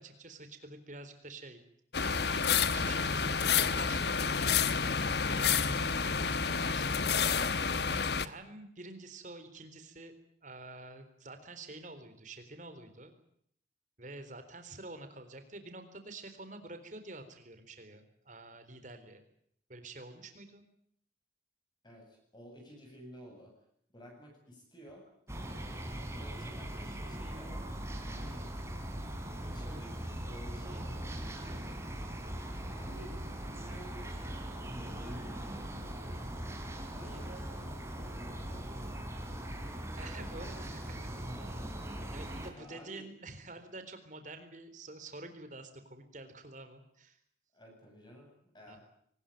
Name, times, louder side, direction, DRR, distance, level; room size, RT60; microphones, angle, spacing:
voice 1, 0.0-1.6 2.1-4.9 5.3-7.3 7.9-10.1 10.4-13.1 14.0-19.2 19.7-20.6 39.9-40.5 42.1-47.2 48.7-48.8, right 2 dB, 45° right, 9 dB, 3.9 m, -48 dB
sound 1, 1.9-8.3, left 6 dB, 60° left, 1.1 m, -29 dB
voice 2, 21.8-23.5 23.9-25.1 26.0-28.5 29.4-31.3 32.7-36.4 36.9-38.7 40.2-41.7 42.5-43.1 47.5-48.8, equal, 25° left, 1 dB, 7.9 m, -53 dB
sound 2, 25.3-42.5, right 1 dB, 15° right, 3.5 m, -40 dB
23.5 x 20.0 x 9.1 m, 0.66 s
head